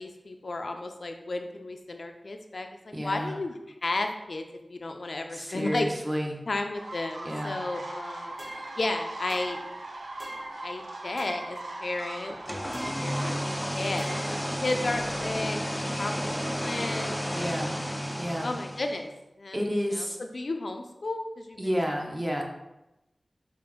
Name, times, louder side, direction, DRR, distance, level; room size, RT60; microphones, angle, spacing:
voice 1, 0.0-3.5 3.8-4.4 4.7-5.9 6.5-8.3 8.8-9.6 10.6-14.1 14.6-17.5 18.4-19.1 19.4-19.6 19.9-21.7, left 2 dB, 70° left, 5 dB, 0.4 m, -33 dB
voice 2, 2.9-3.3 5.3-6.4 7.2-7.6 17.3-17.7 18.2-18.5 19.5-20.2 21.6-22.4, equal, 20° right, 0 dB, 0.8 m, -30 dB
sound 1, 6.7-13.7, right 2 dB, 85° right, 0.4 m, -40 dB
sound 2, 8.4-8.8 9.3-9.7 10.2-10.6 11.2-11.6 12.7-13.2 14.0-14.4, right 1 dB, 50° right, 1.4 m, -43 dB
sound 3, 12.3-19.1, equal, 5° left, 0.4 m, -32 dB
5.0 x 2.5 x 3.5 m, 0.95 s
wide cardioid pair, 55°, 0 cm